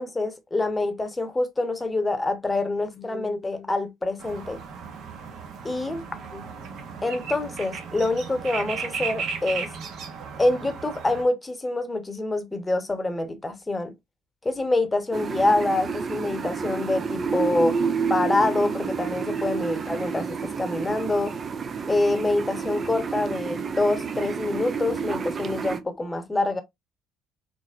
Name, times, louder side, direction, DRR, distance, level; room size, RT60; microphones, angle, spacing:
voice 1, 0.0-4.6 5.6-6.0 6.3-6.4 7.0-9.7 10.4-13.9 14.4-17.8 18.1-21.3 21.9-26.6, left 2 dB, 15° left, 1.0 m, -26 dB
sound 1, 4.2-11.2, right 5 dB, 55° right, 0.8 m, -35 dB
sound 2, 15.1-25.8, right 6 dB, 40° right, 0.5 m, -29 dB
4.1 x 3.1 x 2.4 m
figure-of-eight pair, 50°, 0 cm